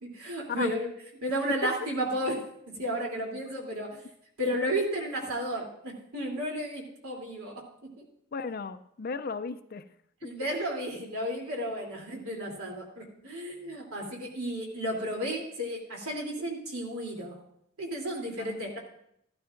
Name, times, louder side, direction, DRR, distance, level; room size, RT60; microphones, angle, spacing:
voice 1, 0.0-0.9 1.2-2.4 2.7-3.9 4.4-7.6 8.0-8.1 10.2-17.4 17.8-18.8, equal, 80° right, -1 dB, 3.1 m, -33 dB
voice 2, 8.3-9.9 10.2-10.3 18.4-18.8, left 4 dB, 45° left, 11 dB, 0.4 m, -36 dB
14.5 x 12.0 x 2.5 m, 0.71 s
head